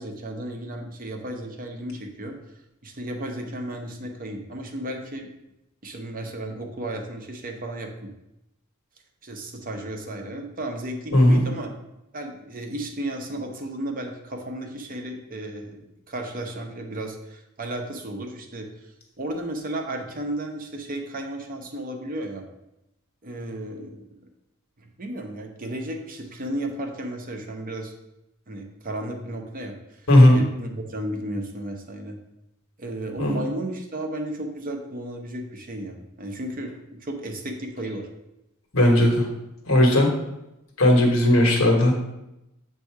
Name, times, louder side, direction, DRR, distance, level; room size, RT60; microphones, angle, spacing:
voice 1, 0.0-2.4 2.8-5.3 5.8-8.1 9.2-11.7 12.1-15.8 16.1-18.9 19.2-22.4 23.2-24.2 24.8-27.9 28.5-32.2 32.8-38.1, right 1 dB, 40° right, 3 dB, 0.7 m, -34 dB
voice 2, 11.1-11.4 30.1-30.4 33.2-33.4 38.7-39.2 39.7-40.1 40.8-41.9, left 1 dB, 65° left, 1 dB, 1.3 m, -16 dB
7.5 x 2.7 x 4.6 m, 0.89 s
head